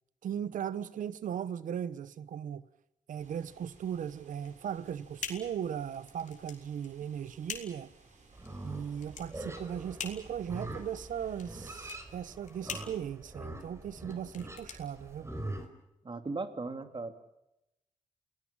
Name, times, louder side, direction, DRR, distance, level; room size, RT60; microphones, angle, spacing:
voice 1, 0.2-2.7 3.1-7.9 8.6-15.3, right 8 dB, 85° right, 1.0 m, -38 dB
sound 1, 3.2-11.9, right 3 dB, 70° right, 7.8 m, -61 dB
sound 2, 4.4-15.7, left 6 dB, 70° left, 3.9 m, -46 dB
Livestock farm animals working animals, 8.3-15.7, right 1 dB, 20° right, 4.9 m, -44 dB
voice 2, 16.0-17.1, right 3 dB, 40° right, 2.8 m, -37 dB
29.5 x 19.0 x 7.3 m
cardioid pair, 65°, 13 cm